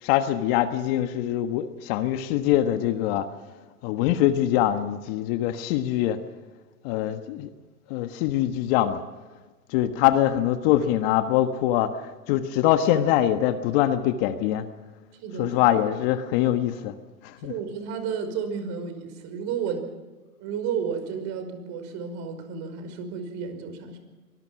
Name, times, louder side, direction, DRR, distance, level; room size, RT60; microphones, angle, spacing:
voice 1, 0.0-3.3 3.8-6.2 6.8-7.5 7.9-9.0 9.7-14.7 15.4-17.0 17.2-17.5, left 12 dB, 40° left, 9 dB, 1.5 m, -23 dB
voice 2, 15.2-15.6 17.4-19.9 20.4-24.0, right 6 dB, 35° right, 8 dB, 5.3 m, -32 dB
24.0 x 20.0 x 6.0 m, 1.3 s
hypercardioid pair, 130°, 45 cm